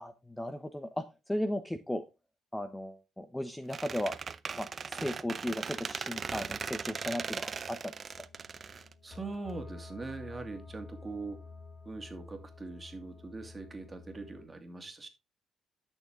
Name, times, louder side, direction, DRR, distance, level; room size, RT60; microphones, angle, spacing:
voice 1, 0.0-2.0 2.5-4.1 4.6-7.9, left 1 dB, 10° left, 0.9 m, -36 dB
Squeak, 3.7-9.5, right 5 dB, 40° right, 0.6 m, -39 dB
sound 1, 8.1-14.4, left 4 dB, 30° left, 5.0 m, -50 dB
voice 2, 9.0-11.4 11.8-15.1, right 3 dB, 25° right, 2.5 m, -42 dB
11.0 x 6.6 x 3.7 m
cardioid pair, 90°, 0 cm